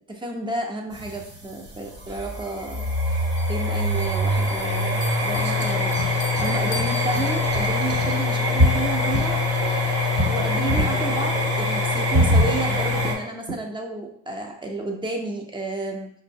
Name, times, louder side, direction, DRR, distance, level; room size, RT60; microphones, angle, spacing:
voice 1, 0.1-2.9 3.5-5.9 6.2-9.7 10.3-16.1, right 2 dB, 15° right, 1 dB, 0.6 m, -31 dB
sound 1, 0.9-13.1, left 2 dB, 50° right, 1.0 m, -23 dB
Bell, 3.4-7.9, left 2 dB, 40° left, 0.5 m, -40 dB
5.0 x 2.1 x 2.6 m, 0.70 s
cardioid pair, 90°, 30 cm